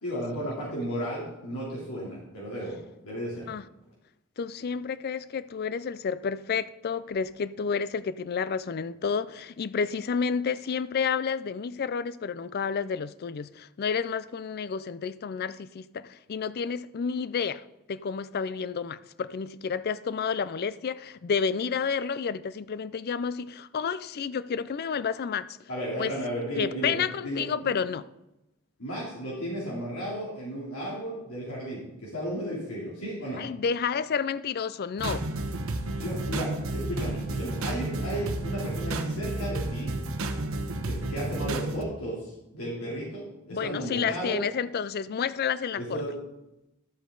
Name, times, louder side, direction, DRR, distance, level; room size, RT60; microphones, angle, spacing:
voice 1, 0.0-2.8 3.0-3.5 25.7-26.9 27.2-27.5 28.8-33.4 36.0-40.0 40.8-44.4 45.8-46.1, equal, 75° left, 3.0 m, -34 dB
voice 2, 4.4-17.6 17.9-25.6 26.0-26.1 26.6-28.1 33.4-35.3 43.5-46.0, left 6 dB, 45° left, 0.4 m, -30 dB
sound 1, 35.0-41.8, right 2 dB, 65° right, 1.0 m, -31 dB
11.5 x 8.2 x 3.9 m
head